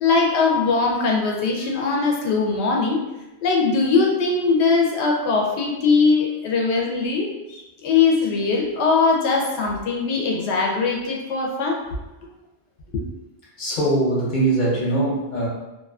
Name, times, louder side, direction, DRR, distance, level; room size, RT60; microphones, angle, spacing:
voice 1, 0.0-3.0 3.4-11.8 12.9-13.0, left 4 dB, 75° left, 0 dB, 0.9 m, -21 dB
voice 2, 13.6-15.5, right 2 dB, 45° left, -6 dB, 0.9 m, -21 dB
2.5 x 2.4 x 2.3 m, 1.0 s
omnidirectional pair, 1.2 m